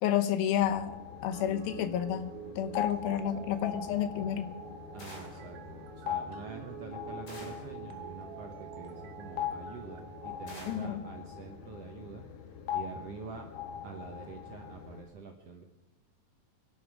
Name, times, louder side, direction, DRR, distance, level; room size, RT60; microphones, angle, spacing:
voice 1, 0.0-0.9 1.2-4.5 10.7-11.0, left 10 dB, 85° left, 10 dB, 2.8 m, -30 dB
sound 1, 0.6-15.0, left 9 dB, 65° left, 2.3 m, -42 dB
sound 2, 1.3-10.7, right 9 dB, 85° right, 2.8 m, -47 dB
voice 2, 4.9-12.3 12.7-13.5 13.8-15.6, right 5 dB, 70° right, 3 dB, 1.5 m, -46 dB
sound 3, 5.0-5.5 7.3-7.8 10.5-11.0, left 1 dB, 30° left, 3.1 m, -48 dB
24.0 x 11.5 x 4.8 m, 1.1 s
omnidirectional pair, 4.2 m